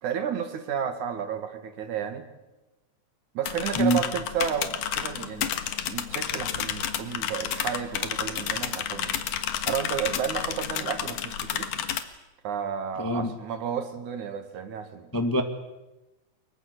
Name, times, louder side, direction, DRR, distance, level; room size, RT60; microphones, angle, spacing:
voice 1, 0.0-2.3 3.3-5.5 5.9-9.2 9.7-11.8 12.4-15.1, right 8 dB, 70° right, 8 dB, 3.3 m, -32 dB
sound 1, 3.5-12.0, left 9 dB, 80° left, 2.9 m, -31 dB
voice 2, 13.0-13.3 15.1-15.4, equal, 10° left, 6 dB, 1.1 m, -24 dB
25.0 x 22.5 x 8.2 m, 1.0 s
omnidirectional pair, 3.6 m